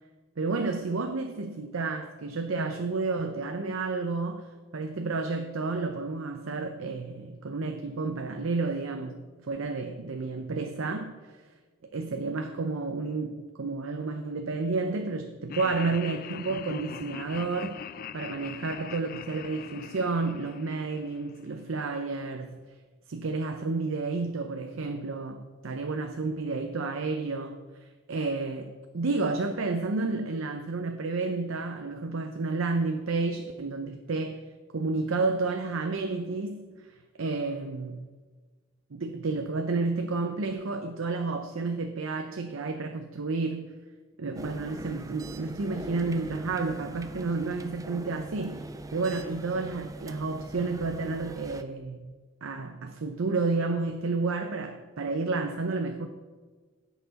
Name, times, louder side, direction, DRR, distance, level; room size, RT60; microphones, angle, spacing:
voice 1, 0.4-11.3 11.9-17.9 18.1-22.6 23.1-27.6 28.1-34.5 34.7-36.7 37.2-38.1 38.9-43.7 44.2-52.1 52.4-56.1, right 3 dB, 85° right, 0.6 m, -31 dB
Laughter, 15.5-21.7, left 8 dB, 45° left, 0.3 m, -42 dB
sound 1, 44.3-51.6, right 2 dB, 15° right, 0.4 m, -41 dB
16.0 x 5.8 x 4.1 m
head